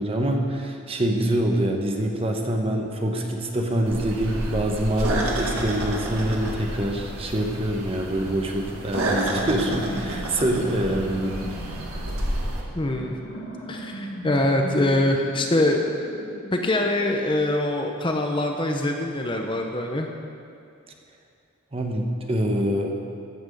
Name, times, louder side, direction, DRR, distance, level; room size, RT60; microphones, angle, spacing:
voice 1, 0.0-11.3 21.7-23.0, right 1 dB, 25° right, 2 dB, 1.0 m, -25 dB
sound 1, 3.9-12.6, right 1 dB, 85° right, 1.7 m, -30 dB
sound 2, 9.2-17.0, equal, 65° left, 2.8 m, -37 dB
voice 2, 12.8-13.2 13.7-15.8 16.5-20.1, left 1 dB, 20° left, 3 dB, 0.7 m, -23 dB
15.5 x 6.1 x 6.6 m, 2.5 s
head